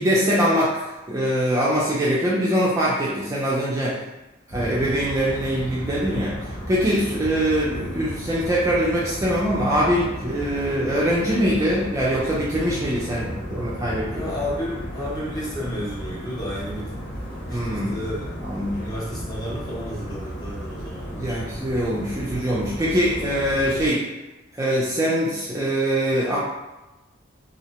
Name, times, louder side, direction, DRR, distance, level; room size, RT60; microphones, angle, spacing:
voice 1, 0.0-4.0 4.5-6.4 6.7-14.3 17.5-18.0 18.4-18.8 21.2-24.0 24.5-26.4, equal, 15° right, -6 dB, 0.3 m, -23 dB
sound 1, 4.5-23.9, equal, 65° left, 1.1 m, -34 dB
voice 2, 14.1-16.9 17.3-18.3 18.8-21.4, equal, 20° left, -6 dB, 0.7 m, -32 dB
2.7 x 2.0 x 2.8 m, 1.0 s
head